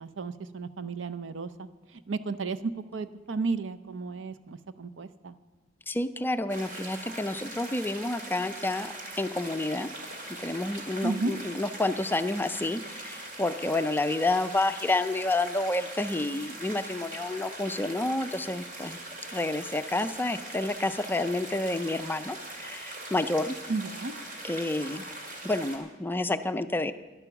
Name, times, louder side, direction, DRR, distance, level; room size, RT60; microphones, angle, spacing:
voice 1, 0.0-1.7 2.1-5.3 11.0-11.3 23.7-24.1, right 4 dB, 75° right, 12 dB, 0.6 m, -33 dB
voice 2, 5.9-9.9 10.4-19.0 19.3-23.5 24.4-25.0 25.4-26.9, left 2 dB, 10° left, 11 dB, 0.4 m, -29 dB
sound 1, 6.5-25.8, right 1 dB, 45° right, 2.2 m, -41 dB
11.5 x 11.0 x 7.0 m, 1.2 s
head